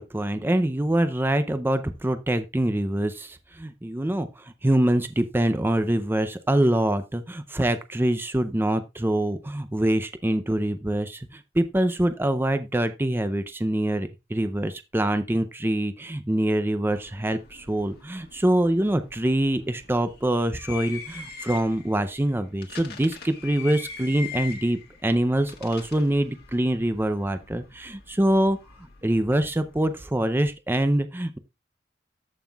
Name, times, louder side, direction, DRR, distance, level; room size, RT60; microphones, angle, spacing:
voice 1, 0.0-28.6 29.0-31.4, right 1 dB, 10° right, 0.5 m, -25 dB
sound 1, 16.9-30.0, left 6 dB, 60° left, 1.5 m, -43 dB
14.0 x 5.7 x 2.3 m
head